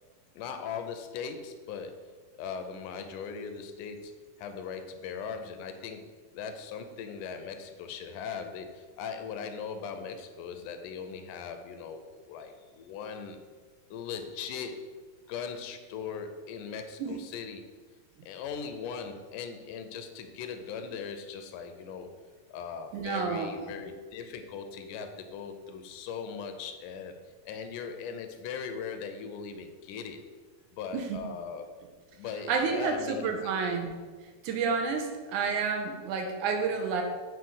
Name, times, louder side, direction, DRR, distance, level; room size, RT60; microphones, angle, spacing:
voice 1, 0.4-1.9 2.3-4.1 4.4-6.0 6.3-13.4 13.9-14.8 15.3-17.6 18.2-22.1 22.5-27.2 27.5-30.2 30.7-31.7 32.1-33.5, left 6 dB, 85° left, 7 dB, 2.0 m, -39 dB
voice 2, 22.9-23.5 30.9-31.2 32.5-34.0 34.4-37.0, right 5 dB, 80° right, 4 dB, 2.0 m, -30 dB
7.0 x 3.0 x 5.3 m, 1.4 s
omnidirectional pair, 3.7 m